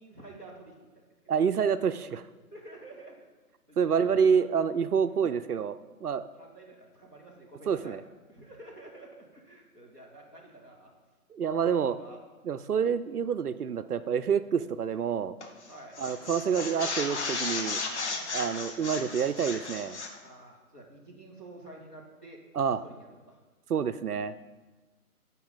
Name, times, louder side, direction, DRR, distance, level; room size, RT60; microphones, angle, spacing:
voice 1, 0.0-1.3 2.5-3.2 3.7-3.8 4.2-4.3 6.1-7.9 8.3-10.9 11.6-12.2 15.7-16.0 18.2-18.6 20.2-22.4 22.8-23.4, right 2 dB, 10° left, -6 dB, 0.8 m, -50 dB
voice 2, 1.3-2.2 3.8-6.2 7.7-8.0 11.3-12.0 12.4-15.4 16.0-17.8 18.3-20.0 22.5-22.8 23.7-24.3, right 7 dB, 75° right, 12 dB, 0.6 m, -27 dB
sound 1, 15.4-15.7 15.9-20.2, left 4 dB, 45° left, 1.2 m, -34 dB
14.5 x 5.7 x 3.9 m, 1.3 s
figure-of-eight pair, 145°, 46 cm